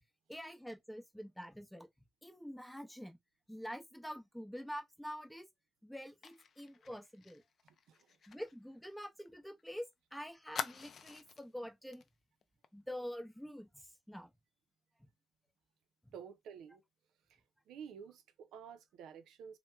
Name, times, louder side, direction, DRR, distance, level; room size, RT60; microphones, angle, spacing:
voice 1, 0.3-1.9 2.2-3.2 3.5-5.5 5.8-7.4 8.3-9.8 10.1-12.0 12.7-14.3, equal, 5° left, 0.7 m, -46 dB
Fire, 6.2-9.7 9.9-10.0 10.5-11.5 11.9-12.1 12.4-12.7, left 6 dB, 55° left, 0.4 m, -46 dB
voice 2, 7.6-8.1 16.1-16.8 17.3-17.4 17.7-19.6, right 7 dB, 85° right, 0.5 m, -51 dB
2.8 x 2.1 x 3.3 m
cardioid pair, 90°, 0 cm